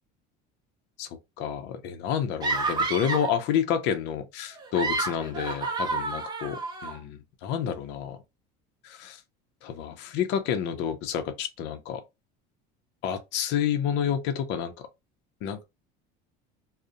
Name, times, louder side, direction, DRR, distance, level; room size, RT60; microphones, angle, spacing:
voice 1, 1.4-8.2 8.8-9.2 9.6-12.0 13.0-14.7 15.4-15.6, left 8 dB, 60° left, 0.5 m, -29 dB
sound 1, 2.4-3.4 4.6-7.0, right 3 dB, 20° right, 0.5 m, -29 dB
2.4 x 2.0 x 2.6 m
cardioid pair, 135°, 21 cm